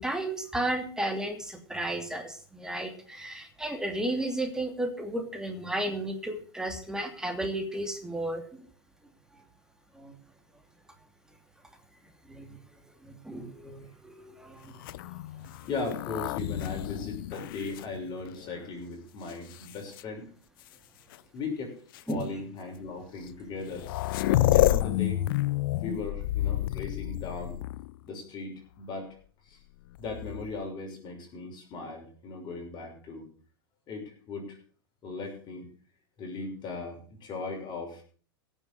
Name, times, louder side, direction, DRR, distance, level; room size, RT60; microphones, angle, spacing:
voice 1, 0.0-8.6 9.9-10.1 12.3-12.6 13.0-14.7 22.1-22.3, right 1 dB, 5° right, 4 dB, 2.6 m, -33 dB
sound 1, 14.8-18.6 19.3-20.0 21.1-21.2 21.9-22.1 23.3-23.4 23.5-28.0 29.9-30.6, left 15 dB, 60° left, 0.5 m, -29 dB
voice 2, 15.7-20.3 21.3-21.8 22.1-23.9 24.2-25.3 25.8-27.6 28.0-29.1 29.4-29.6 30.0-33.3 33.9-34.6 35.0-35.7 36.2-38.0, left 3 dB, 35° left, 1 dB, 6.2 m, -38 dB
16.5 x 7.5 x 6.6 m, 0.42 s
hypercardioid pair, 95°, 13 cm